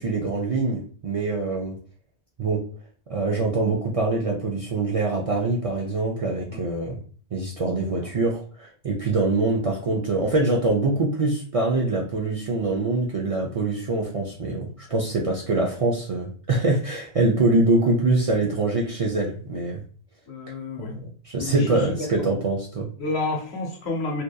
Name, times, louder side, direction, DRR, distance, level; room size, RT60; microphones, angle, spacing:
voice 1, 0.0-1.8 2.4-2.6 3.1-7.0 7.3-19.8 20.9-22.9, right 2 dB, 55° right, -2 dB, 0.4 m, -24 dB
voice 2, 20.3-20.9 21.4-22.1 23.0-24.2, left 3 dB, 85° left, 2 dB, 1.0 m, -30 dB
2.7 x 2.4 x 2.2 m, 0.43 s
omnidirectional pair, 1.1 m